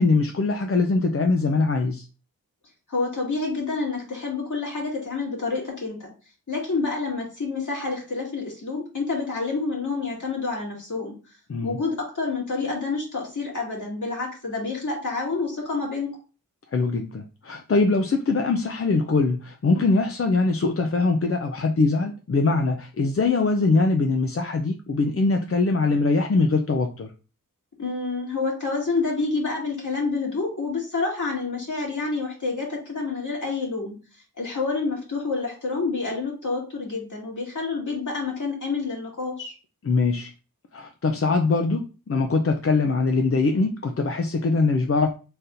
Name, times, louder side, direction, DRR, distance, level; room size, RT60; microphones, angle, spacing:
voice 1, 0.0-2.1 11.5-11.8 16.7-27.1 39.8-40.3 40.7-45.1, left 3 dB, 40° left, 4 dB, 0.5 m, -22 dB
voice 2, 2.9-6.1 6.5-11.2 11.6-16.1 27.8-34.0 34.4-39.5, left 4 dB, 55° left, -3 dB, 2.2 m, -28 dB
4.0 x 4.0 x 2.6 m, 0.34 s
cardioid pair, 50°, 36 cm